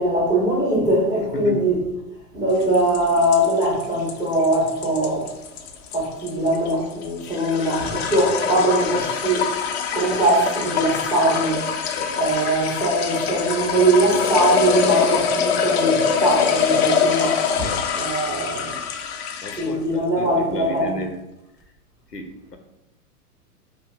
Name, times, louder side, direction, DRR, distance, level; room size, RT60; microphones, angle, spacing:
voice 1, 0.0-1.8 2.3-5.3 5.9-9.5 9.9-11.6 12.1-17.7 17.9-18.7 19.6-20.9, right 1 dB, 10° right, 1.1 m, -21 dB
sound 1, 2.6-19.8, left 6 dB, 45° left, 0.4 m, -24 dB
voice 2, 17.6-18.8 19.4-21.2 22.1-22.6, left 1 dB, 90° left, 0.7 m, -33 dB
4.6 x 2.6 x 2.2 m
figure-of-eight pair, 100°, 47 cm